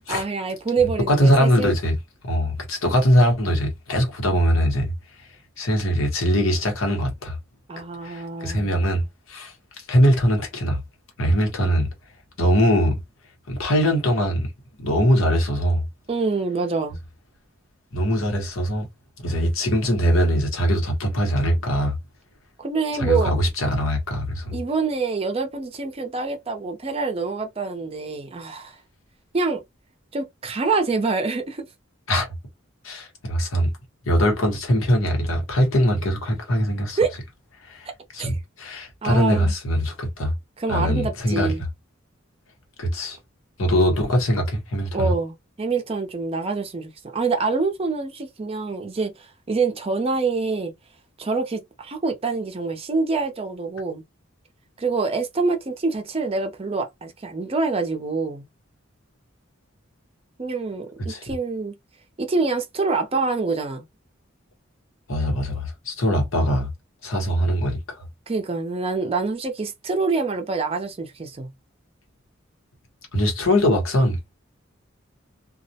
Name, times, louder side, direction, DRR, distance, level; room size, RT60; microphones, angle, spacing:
voice 1, 0.1-1.7 7.7-8.8 16.1-17.0 22.6-23.4 24.5-28.8 29.3-29.6 30.1-31.7 37.0-37.1 38.2-38.3 39.0-39.6 40.6-41.6 44.9-50.7 51.2-54.0 54.8-58.5 60.4-60.9 61.2-61.8 62.2-63.8 68.3-71.5, right 4 dB, 30° right, 0.5 m, -26 dB
voice 2, 1.1-2.0 2.2-4.9 5.6-7.4 8.0-9.5 9.9-10.8 11.2-11.9 12.4-13.0 13.5-14.5 14.8-15.8 17.9-18.9 19.2-21.9 22.9-24.6 32.1-32.3 32.8-33.7 34.0-37.0 37.6-37.9 38.1-40.3 40.7-41.5 42.8-43.2 43.6-45.1 61.1-61.3 65.1-66.7 67.0-68.0 73.1-74.4, equal, 85° left, 1.0 m, -21 dB
2.3 x 2.0 x 2.7 m
head